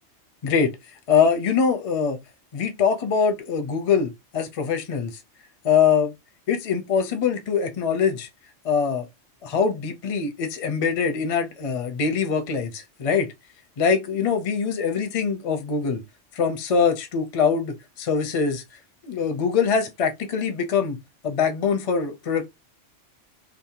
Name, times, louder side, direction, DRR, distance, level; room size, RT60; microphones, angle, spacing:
voice 1, 0.4-0.8 1.1-2.2 2.5-5.2 5.6-6.1 6.5-8.3 8.6-9.1 9.4-13.3 13.8-16.0 16.3-18.6 19.0-22.5, left 6 dB, 45° left, 0.4 m, -23 dB
2.6 x 2.0 x 2.8 m
omnidirectional pair, 1.3 m